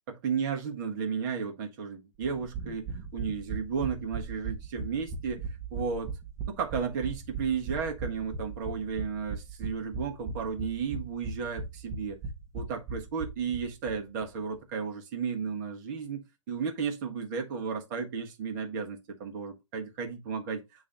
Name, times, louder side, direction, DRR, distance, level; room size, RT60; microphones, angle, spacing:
voice 1, 0.1-2.9 3.1-6.1 6.5-12.2 12.5-20.9, right 6 dB, 35° right, 1.5 m, -34 dB
sound 1, 2.2-13.9 14.2-14.3 14.5-14.6, right 5 dB, 20° right, 1.4 m, -38 dB
8.6 x 3.2 x 3.8 m
hypercardioid pair, 145°, 16 cm